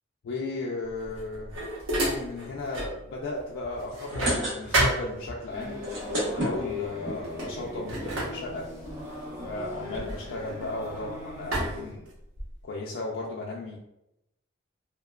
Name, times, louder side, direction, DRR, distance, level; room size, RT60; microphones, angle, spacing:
voice 1, 0.2-1.5 2.0-5.8 6.3-8.7 9.4-12.1 12.6-13.8, left 2 dB, 75° left, -3 dB, 0.4 m, -35 dB
Pots and pans scramble, 1.0-3.0 3.4-5.7 6.5-6.8 7.1-11.0 11.5-12.6, right 1 dB, 90° right, 0.8 m, -31 dB
sound 1, 3.9-5.0 5.3-5.4 5.7-7.2 7.9-8.0 8.2-8.3 8.5-8.7, right 1 dB, 60° right, 1.0 m, -31 dB
sound 2, 5.5-11.8, left 2 dB, 15° right, 0.7 m, -38 dB
2.8 x 2.2 x 2.2 m, 0.86 s
head